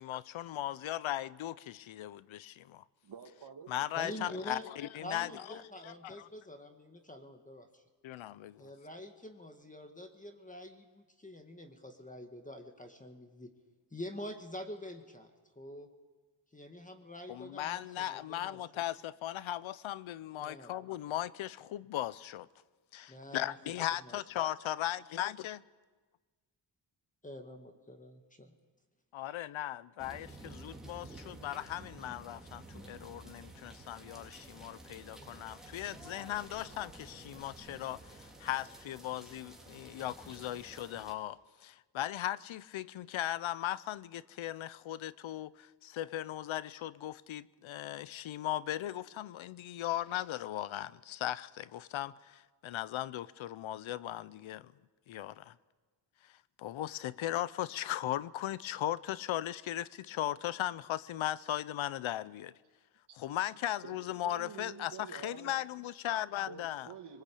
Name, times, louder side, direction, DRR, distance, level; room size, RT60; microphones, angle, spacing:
voice 1, 0.0-2.8 3.7-5.6 5.8-6.3 8.0-8.7 17.3-22.5 22.9-25.6 29.1-54.7 55.1-55.5 56.2-62.5 63.2-66.9, left 13 dB, 80° left, 0.8 m, -38 dB
voice 2, 3.0-4.4 63.8-64.0 64.2-65.5 66.5-67.2, right 7 dB, 60° right, 2.0 m, -48 dB
voice 3, 4.0-4.7 5.0-7.8 8.6-13.5 13.9-15.3 15.6-15.9 16.5-18.8 20.4-20.7 23.1-23.6 24.0-24.2 27.2-28.5, left 1 dB, 15° left, 1.9 m, -46 dB
sound 1, 30.0-41.1, right 2 dB, ahead, 3.7 m, -51 dB
22.5 x 20.5 x 8.5 m
cardioid pair, 95°, 47 cm